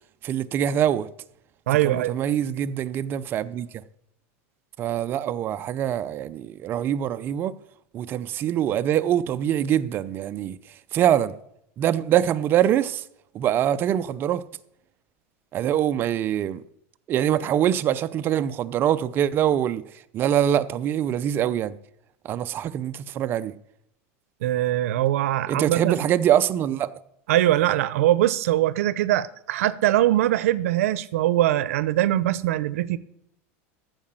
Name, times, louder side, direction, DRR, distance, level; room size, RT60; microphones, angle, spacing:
voice 1, 0.2-1.1 1.8-3.7 4.8-7.5 7.9-10.6 10.9-11.4 11.8-13.0 13.3-14.4 15.5-16.6 17.1-19.8 20.1-21.7 22.2-23.5 25.5-26.9, right 10 dB, 30° right, 0.5 m, -24 dB
voice 2, 1.7-2.2 24.4-26.0 27.3-33.0, right 14 dB, 90° right, 0.6 m, -22 dB
14.5 x 4.8 x 7.5 m
supercardioid pair, 160°, 7 cm